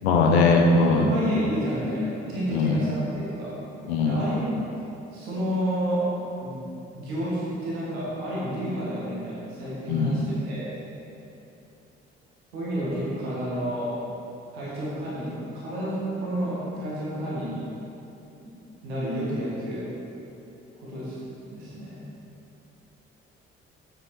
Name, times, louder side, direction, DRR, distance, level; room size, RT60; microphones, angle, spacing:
voice 1, 0.0-1.1 2.5-2.8 3.9-4.2 9.9-10.2, left 3 dB, 75° left, 1 dB, 0.8 m, -20 dB
voice 2, 1.0-3.5 4.0-4.4 5.1-6.0 6.4-6.6 6.9-10.7 12.5-13.9 14.5-17.6 18.8-19.8 20.8-21.2 21.5-22.0, equal, 75° right, -8 dB, 1.9 m, -30 dB
7.5 x 7.4 x 4.9 m, 2.9 s
figure-of-eight pair, 40°, 33 cm